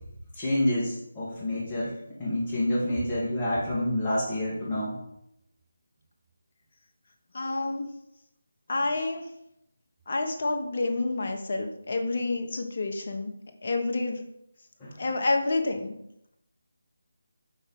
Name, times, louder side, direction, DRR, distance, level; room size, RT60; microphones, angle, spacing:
voice 1, 0.3-1.9 2.2-4.9 14.8-14.9, left 1 dB, 15° left, -10 dB, 1.8 m, -28 dB
voice 2, 7.3-7.9 8.7-9.2 10.1-13.3 13.6-14.2 15.0-15.9, left 2 dB, 50° left, 4 dB, 1.1 m, -28 dB
5.3 x 4.3 x 5.3 m, 0.81 s
figure-of-eight pair, 155°, 0 cm